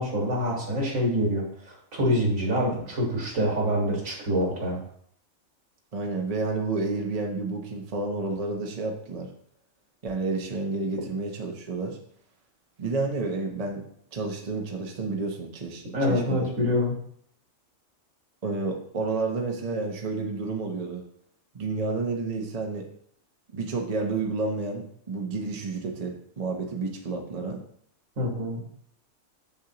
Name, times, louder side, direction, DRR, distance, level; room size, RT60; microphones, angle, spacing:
voice 1, 0.0-4.8 15.9-17.0 28.2-28.6, equal, 70° right, -2 dB, 2.2 m, -26 dB
voice 2, 5.9-9.3 10.0-12.0 12.8-13.8 14.1-16.4 18.4-21.0 21.5-22.9 23.5-27.6, right 3 dB, 35° right, 1 dB, 0.8 m, -30 dB
7.2 x 6.7 x 2.9 m, 0.65 s
omnidirectional pair, 1.4 m